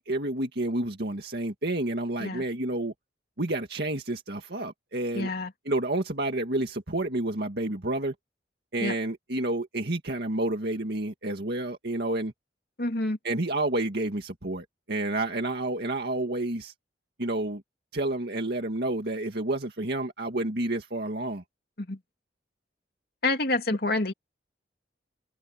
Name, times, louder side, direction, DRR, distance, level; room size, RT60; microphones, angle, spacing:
voice 1, 0.0-2.9 3.4-5.3 5.7-8.1 8.7-12.3 13.2-16.7 17.2-17.6 17.9-21.4, right 2 dB, 60° right, 2.1 m, -29 dB
voice 2, 5.1-5.5 8.8-8.9 12.8-13.2 21.8-22.0 23.2-24.1, left 2 dB, 60° left, 2.7 m, -27 dB
head